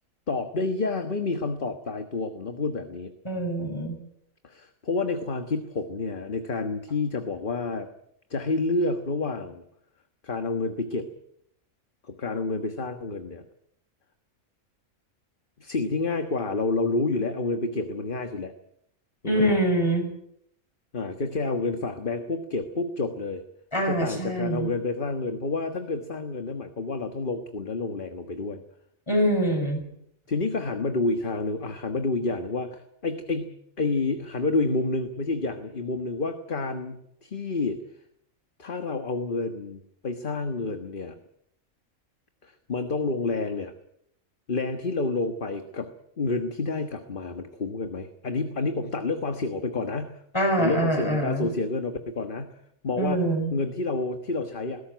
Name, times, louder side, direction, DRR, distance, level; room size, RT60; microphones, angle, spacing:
voice 1, 0.3-3.1 4.4-7.9 8.3-9.6 10.2-11.1 12.0-13.4 15.6-18.5 19.2-19.6 20.9-23.4 23.8-28.6 30.3-37.8 38.6-41.2 42.4-43.7 44.5-45.9 46.2-50.2 50.6-52.6 52.8-53.3 53.5-54.8, left 3 dB, 40° left, 7 dB, 1.5 m, -29 dB
voice 2, 3.2-4.0 19.2-20.1 23.7-24.7 29.1-29.8 50.3-51.5 53.0-53.5, right 1 dB, 20° left, 4 dB, 6.2 m, -24 dB
20.5 x 17.0 x 9.3 m, 0.74 s
omnidirectional pair, 1.5 m